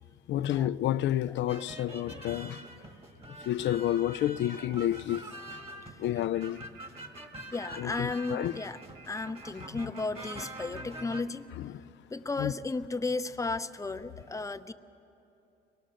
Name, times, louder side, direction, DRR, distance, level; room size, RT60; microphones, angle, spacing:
voice 1, 0.3-2.6 3.5-5.2 6.0-6.6 7.8-8.5 11.6-11.7 12.4-12.5, left 12 dB, 65° left, 0.4 m, -30 dB
sound 1, 1.5-11.2, right 1 dB, 30° right, 1.8 m, -45 dB
sound 2, 6.2-11.1, right 5 dB, 60° right, 1.3 m, -53 dB
voice 2, 7.5-8.8 9.1-11.5 12.1-14.7, left 3 dB, 15° left, 0.7 m, -34 dB
23.0 x 19.0 x 6.3 m
cardioid pair, 90°, 20 cm